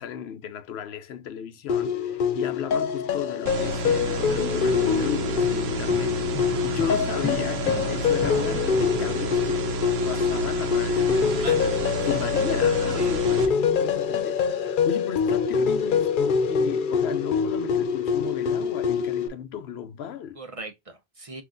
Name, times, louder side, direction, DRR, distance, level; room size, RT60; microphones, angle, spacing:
voice 1, 0.0-6.2 6.6-9.6 10.0-20.4, left 9 dB, 85° left, 0.9 m, -34 dB
sound 1, 1.7-19.3, left 6 dB, 60° left, 0.7 m, -25 dB
sound 2, 3.5-13.5, right 3 dB, 75° right, 1.0 m, -30 dB
sound 3, 5.4-10.8 18.3-19.4, left 1 dB, 10° left, 0.9 m, -39 dB
voice 2, 6.4-6.8 10.1-10.3 11.3-11.6 13.0-13.1 20.4-21.4, right 2 dB, 35° right, 0.7 m, -40 dB
5.7 x 2.9 x 2.5 m
omnidirectional pair, 1.1 m